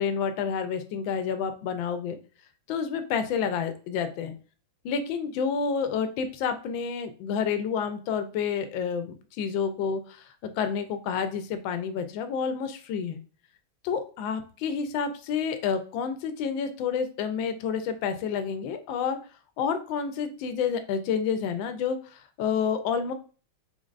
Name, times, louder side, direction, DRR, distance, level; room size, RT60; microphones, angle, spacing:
voice 1, 0.0-2.2 2.7-4.3 4.8-10.3 10.6-13.2 13.8-19.2 19.6-23.1, left 6 dB, 80° left, 8 dB, 1.3 m, -29 dB
5.2 x 3.6 x 2.4 m, 0.38 s
omnidirectional pair, 2.2 m